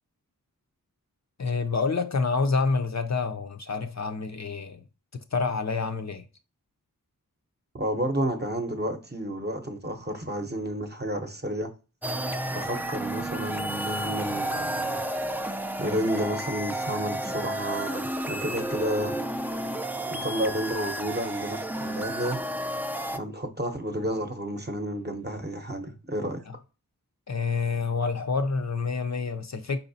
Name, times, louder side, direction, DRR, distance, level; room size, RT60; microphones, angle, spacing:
voice 1, 1.4-4.8 5.3-6.2 26.5-26.6 27.3-29.8, left 4 dB, 50° left, 0.5 m, -28 dB
voice 2, 7.7-11.7 12.5-15.0 15.8-19.2 20.1-22.4 23.1-26.4, right 1 dB, 30° right, 0.8 m, -31 dB
sound 1, 12.0-23.2, right 1 dB, 5° right, 0.3 m, -32 dB
4.7 x 4.1 x 2.7 m
wide cardioid pair, 55°, 36 cm